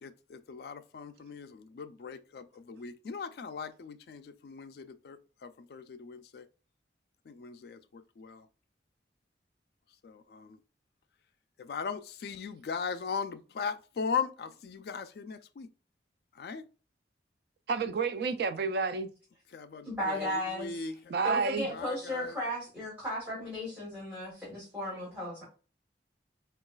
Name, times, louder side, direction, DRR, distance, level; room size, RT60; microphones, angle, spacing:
voice 1, 0.0-6.5 7.3-8.5 10.0-10.6 11.6-15.7 16.3-16.6 19.5-20.9 21.7-22.4, left 5 dB, 60° left, 0.3 m, -39 dB
voice 2, 17.7-19.1 21.1-21.7, right 4 dB, 60° right, 0.3 m, -30 dB
voice 3, 19.8-20.8 21.2-25.4, left 1 dB, 10° right, 1.3 m, -35 dB
3.8 x 2.3 x 2.2 m
head